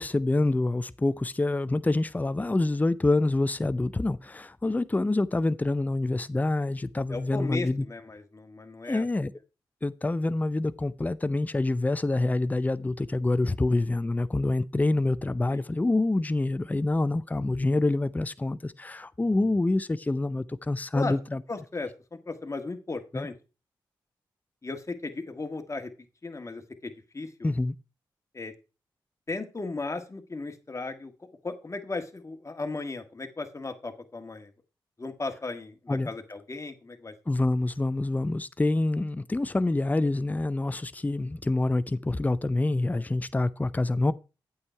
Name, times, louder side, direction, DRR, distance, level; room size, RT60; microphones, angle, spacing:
voice 1, 0.0-7.8 8.9-9.3 9.8-21.4 23.1-23.3 27.4-27.7 35.9-36.1 37.3-44.1, left 2 dB, 15° left, 0.5 m, -26 dB
voice 2, 7.1-9.1 15.5-15.6 20.9-21.2 21.5-21.9 22.2-23.3 24.6-25.9 26.2-27.5 28.3-28.5 29.3-31.1 31.4-34.5 35.0-37.1, left 3 dB, 35° left, 1.6 m, -36 dB
8.7 x 6.4 x 4.5 m
supercardioid pair, 45°, 9 cm